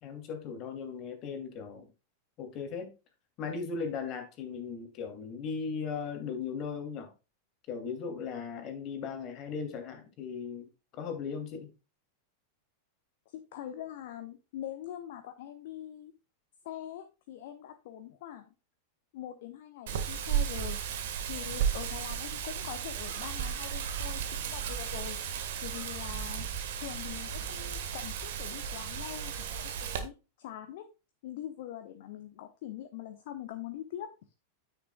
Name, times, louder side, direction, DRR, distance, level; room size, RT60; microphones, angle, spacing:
voice 1, 0.0-1.9 2.4-2.9 3.4-7.1 7.7-11.7, left 5 dB, 35° left, 2.7 m, -37 dB
voice 2, 13.3-16.1 16.6-18.5 19.1-20.8 21.3-25.2 25.6-26.5 26.8-30.9 31.2-34.1, left 11 dB, 50° left, 1.0 m, -43 dB
Wind, 19.9-30.0, right 8 dB, 55° right, 1.5 m, -34 dB
9.6 x 8.9 x 2.3 m
figure-of-eight pair, 90°, 0 cm